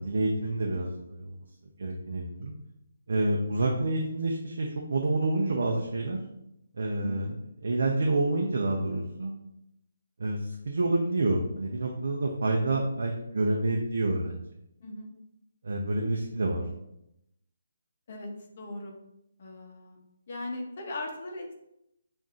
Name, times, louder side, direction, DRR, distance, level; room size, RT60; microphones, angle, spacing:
voice 1, 0.0-1.4 1.8-2.6 3.1-6.2 6.8-7.3 7.6-9.3 10.2-14.3 15.6-16.6, right 2 dB, 60° right, 0 dB, 0.6 m, -28 dB
voice 2, 7.0-7.3 14.8-15.1 18.1-18.3 18.6-18.9 19.4-20.0 20.3-21.5, left 2 dB, 35° left, 1 dB, 0.8 m, -38 dB
7.2 x 2.6 x 2.4 m, 0.82 s
hypercardioid pair, 175°, 0 cm